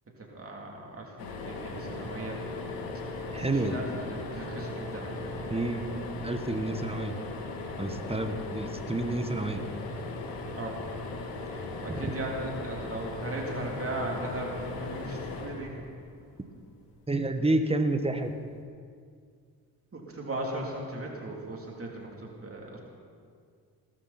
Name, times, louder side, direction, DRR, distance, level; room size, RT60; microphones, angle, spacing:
voice 1, 0.2-2.4 3.4-5.3 10.5-10.8 11.5-15.9 19.9-22.8, right 1 dB, 30° right, -1 dB, 3.3 m, -38 dB
sound 1, 1.2-16.4 18.1-18.3 18.6-18.7, left 2 dB, 85° left, 2.0 m, -38 dB
voice 2, 3.3-3.8 5.5-5.8 6.2-7.1 7.8-9.6 11.9-12.0 17.1-18.3, right 2 dB, 15° right, 7 dB, 1.4 m, -29 dB
19.0 x 13.0 x 4.4 m, 2.2 s
supercardioid pair, 65°, 42 cm